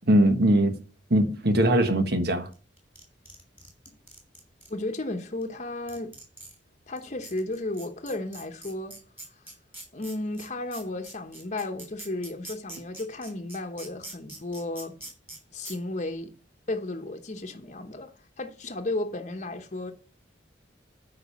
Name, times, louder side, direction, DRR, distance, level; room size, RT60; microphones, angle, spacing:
voice 1, 0.1-0.8 1.1-2.5, right 1 dB, 60° right, 1.5 m, -21 dB
sound 1, 2.8-4.7 5.4-5.5 5.9-6.6 7.0-7.1 7.2-15.4 15.6-15.8, right 2 dB, 10° right, 3.3 m, -43 dB
voice 2, 4.7-6.2 6.9-9.0 9.9-14.9 15.5-16.3 16.7-19.9, left 2 dB, 40° left, 1.0 m, -34 dB
9.3 x 5.1 x 7.1 m
head